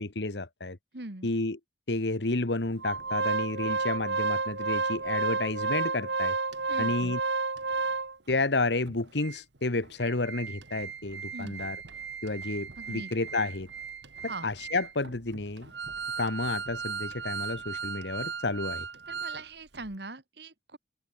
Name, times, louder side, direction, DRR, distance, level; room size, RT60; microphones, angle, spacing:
voice 1, 0.0-0.8 1.2-1.6 1.9-6.3 6.8-7.2 8.3-11.8 12.2-13.7 14.4-15.7 16.2-18.9, left 2 dB, 75° left, 1.6 m, -31 dB
voice 2, 0.9-1.3 6.7-7.2 11.3-11.8 12.8-13.1 14.3-14.5 19.1-20.8, right 2 dB, 65° right, 2.1 m, -41 dB
Organ, 2.8-8.4 8.9-9.0 9.2-9.4 9.8-19.4 19.7-19.9, right 4 dB, 85° right, 2.5 m, -33 dB
open air
head